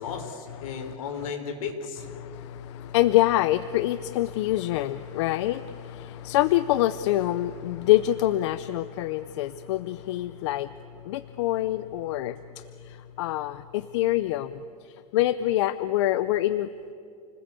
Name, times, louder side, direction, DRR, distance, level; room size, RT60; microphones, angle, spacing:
voice 1, 0.0-2.1, left 6 dB, 70° left, 7 dB, 3.7 m, -34 dB
voice 2, 2.2-10.7 11.0-16.7, left 14 dB, 55° left, 15 dB, 0.6 m, -26 dB
29.5 x 20.0 x 8.3 m, 2.6 s
supercardioid pair, 170°, 18 cm